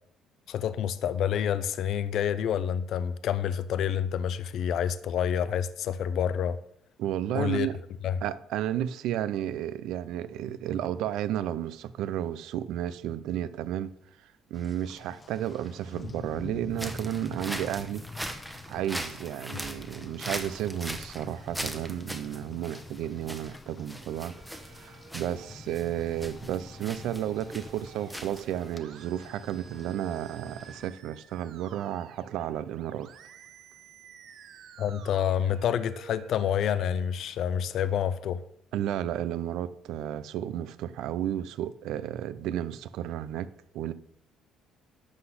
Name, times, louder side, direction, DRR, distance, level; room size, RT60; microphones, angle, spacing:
voice 1, 0.5-6.6 7.3-7.7 8.0-8.2 34.8-38.4, left 9 dB, 60° left, 0.5 m, -28 dB
voice 2, 7.0-7.8 8.2-13.9 14.5-18.1 18.7-24.3 24.7-33.1 38.7-43.9, right 11 dB, 75° right, 0.5 m, -32 dB
Rain, 14.5-30.9, left 4 dB, 25° left, 0.7 m, -46 dB
sound 1, 16.7-28.8, equal, 5° right, 1.0 m, -40 dB
Musical instrument, 24.1-37.1, right 8 dB, 60° right, 0.9 m, -52 dB
11.5 x 4.0 x 7.9 m
cardioid pair, 135°, 0 cm